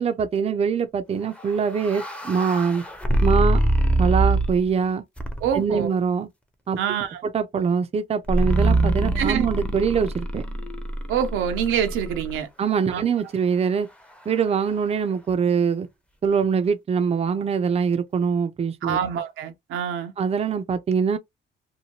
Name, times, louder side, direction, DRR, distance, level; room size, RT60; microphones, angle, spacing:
voice 1, 0.0-2.8 3.2-3.6 4.0-5.0 5.6-6.3 6.7-6.8 7.2-10.4 12.6-13.9 14.3-15.9 16.2-19.0 20.2-21.2, right 6 dB, 30° right, 0.5 m, -23 dB
sound 1, 1.4-4.7 5.2-5.7 8.3-12.4, right 2 dB, 5° left, 0.6 m, -24 dB
voice 2, 5.4-5.9 6.8-7.2 9.1-9.5 11.1-12.5 12.9-13.0 18.8-20.1, right 8 dB, 85° right, 0.7 m, -25 dB
2.8 x 2.1 x 2.9 m
cardioid pair, 90°, 20 cm